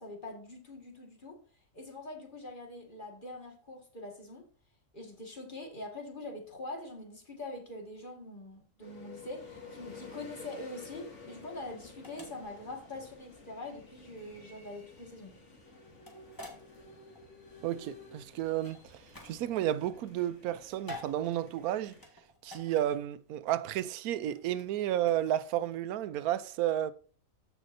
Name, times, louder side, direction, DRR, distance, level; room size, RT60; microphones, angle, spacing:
voice 1, 0.0-1.4 1.7-4.5 4.9-15.4, left 2 dB, 35° left, 2.0 m, -44 dB
sound 1, 8.8-22.1, left 3 dB, 55° left, 2.3 m, -52 dB
sound 2, 12.0-25.7, left 2 dB, 15° left, 1.7 m, -51 dB
voice 2, 17.6-22.0 22.4-26.9, right 12 dB, 90° right, 1.1 m, -32 dB
14.0 x 5.1 x 2.6 m
omnidirectional pair, 1.5 m